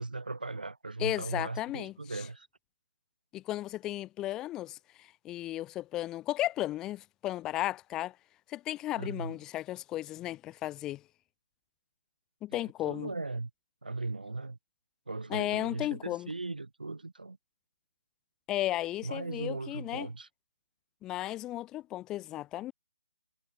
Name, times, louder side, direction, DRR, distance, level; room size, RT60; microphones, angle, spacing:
voice 1, 0.0-2.5 9.0-9.4 12.5-13.5 13.8-14.6 15.1-17.4 19.0-20.3, right 3 dB, 70° right, 1.7 m, -38 dB
voice 2, 1.0-2.2 3.3-8.2 8.5-11.0 12.4-13.1 15.3-16.3 18.5-20.1 21.0-22.7, left 15 dB, 10° left, 0.4 m, -35 dB
figure-of-eight pair, 140°, 5 cm